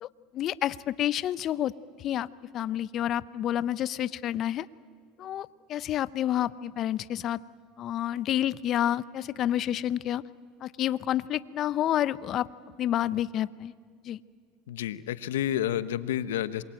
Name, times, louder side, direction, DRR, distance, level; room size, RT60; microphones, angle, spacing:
voice 1, 0.0-1.7 2.0-2.3 2.5-4.7 5.2-7.4 7.8-10.2 10.6-12.5 12.8-13.7 14.0-14.2, left 12 dB, 50° left, 18 dB, 0.7 m, -29 dB
voice 2, 14.7-16.6, left 11 dB, 90° left, 15 dB, 1.0 m, -30 dB
27.5 x 22.5 x 9.0 m, 2.1 s
supercardioid pair, 95°, 0 cm